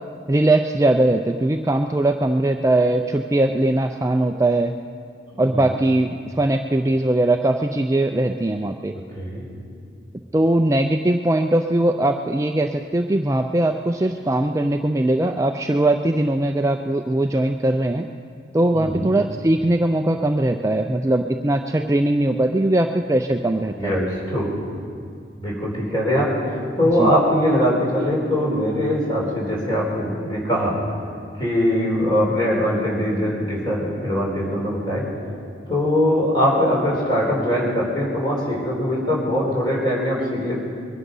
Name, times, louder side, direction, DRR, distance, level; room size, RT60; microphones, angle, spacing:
voice 1, 0.3-4.7 5.4-8.9 10.3-18.1 18.5-24.0 27.0-27.1, right 1 dB, 15° right, 5 dB, 0.4 m, -20 dB
voice 2, 18.7-19.1 23.7-24.5 25.4-30.8 31.4-35.0 35.7-40.6, equal, 25° left, -4 dB, 4.2 m, -22 dB
22.5 x 9.9 x 5.5 m, 2.3 s
head